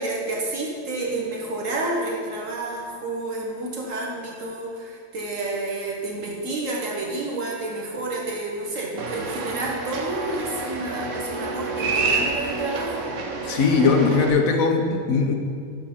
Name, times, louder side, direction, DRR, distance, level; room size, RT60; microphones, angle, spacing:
voice 1, 0.0-13.1, right 2 dB, 65° right, -2 dB, 2.0 m, -30 dB
sound 1, 9.0-14.3, right 3 dB, 85° right, 1.4 m, -28 dB
voice 2, 13.4-15.3, left 4 dB, 80° left, 4 dB, 1.4 m, -20 dB
12.5 x 4.9 x 5.6 m, 2.1 s
omnidirectional pair, 1.4 m